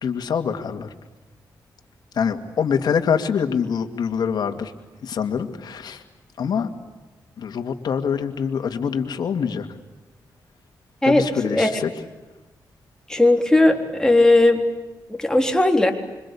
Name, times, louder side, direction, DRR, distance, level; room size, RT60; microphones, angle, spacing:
voice 1, 0.0-0.9 2.1-4.7 5.0-6.0 6.4-6.7 7.4-9.7 11.0-11.9, left 7 dB, 75° left, 6 dB, 2.4 m, -24 dB
voice 2, 13.1-14.6 15.1-15.9, left 2 dB, 10° left, 4 dB, 3.8 m, -17 dB
26.0 x 24.5 x 8.6 m, 1.2 s
cardioid pair, 85°, 7 cm